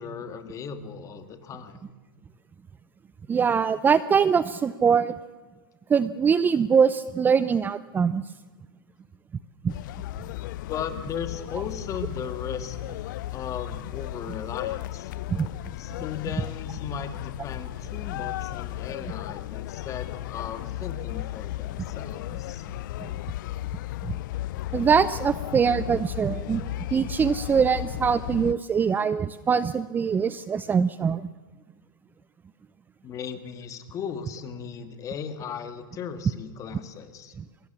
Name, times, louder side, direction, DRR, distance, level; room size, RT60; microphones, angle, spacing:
voice 1, 0.0-1.8 10.6-13.0 13.3-15.1 15.8-22.7 33.0-37.3, left 7 dB, 30° left, 8 dB, 2.6 m, -37 dB
voice 2, 3.3-5.1 5.9-8.2 9.6-9.7 15.3-15.5 23.0-23.1 24.1-24.2 24.7-26.6 26.9-31.3, right 6 dB, 15° right, 16 dB, 0.6 m, -23 dB
sound 1, 9.7-28.5, left 15 dB, 60° left, 0.7 m, -35 dB
23.5 x 21.5 x 7.2 m, 1.3 s
hypercardioid pair, 120°, 12 cm